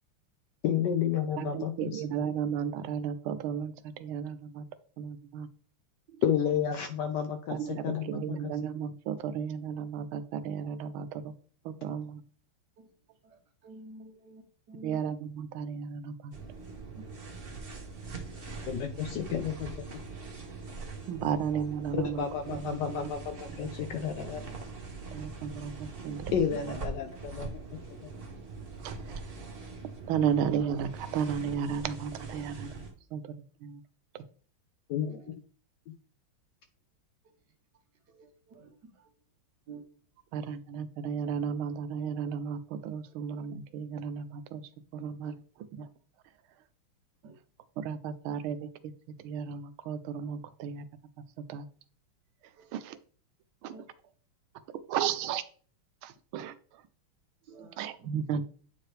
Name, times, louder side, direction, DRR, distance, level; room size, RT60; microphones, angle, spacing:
voice 1, 0.6-2.0 6.2-8.5 18.7-20.0 22.2-24.7 26.3-27.5 28.0-28.1 34.9-35.2, left 8 dB, 70° left, 1.1 m, -31 dB
voice 2, 1.4-4.7 5.0-5.5 7.5-11.3 11.6-12.2 14.8-16.3 21.1-23.1 25.1-26.8 28.8-29.4 30.1-32.8 33.1-33.3 33.6-33.8 34.1-34.2 40.3-44.6 44.9-45.3 45.7-45.9 47.8-48.9 49.2-50.8 51.4-51.7 52.7-53.0 53.6-53.7 54.9-55.4 56.0-56.8 57.8-58.4, right 7 dB, 85° right, 1.5 m, -34 dB
voice 3, 13.2-14.4 14.7-15.1 16.9-17.2 21.2-21.3 24.1-24.6 35.1-35.3 38.1-39.1 39.7-39.8 40.4-40.5 43.1-43.2 45.2-45.4 47.2-47.4 52.5-52.7 53.7-53.9 55.0-55.1 57.4-58.1, right 2 dB, 60° right, 1.4 m, -51 dB
sound 1, 16.3-32.9, right 4 dB, 35° right, 1.0 m, -42 dB
8.6 x 4.7 x 3.2 m
omnidirectional pair, 2.3 m